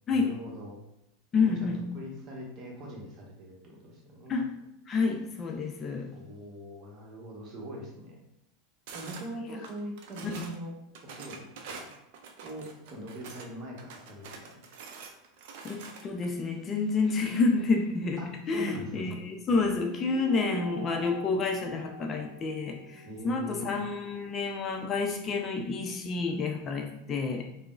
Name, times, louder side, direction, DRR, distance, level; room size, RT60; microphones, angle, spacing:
voice 1, 0.1-0.8 1.4-1.7 1.9-4.4 6.1-8.2 8.9-10.8 11.0-11.9 12.4-14.7 18.2-19.2 23.0-23.7, equal, 45° right, -1 dB, 0.9 m, -42 dB
voice 2, 1.3-1.8 4.3-4.5 4.9-6.1 10.2-10.4 15.6-27.4, left 4 dB, 35° left, 2 dB, 0.4 m, -29 dB
sound 1, 8.9-9.3 9.6-10.6 10.9-13.5 13.8-16.3, right 5 dB, 65° right, 0.4 m, -45 dB
sound 2, 19.9-24.7, right 3 dB, 65° left, 0.7 m, -44 dB
3.6 x 2.0 x 2.4 m, 0.81 s
hypercardioid pair, 95°, 0 cm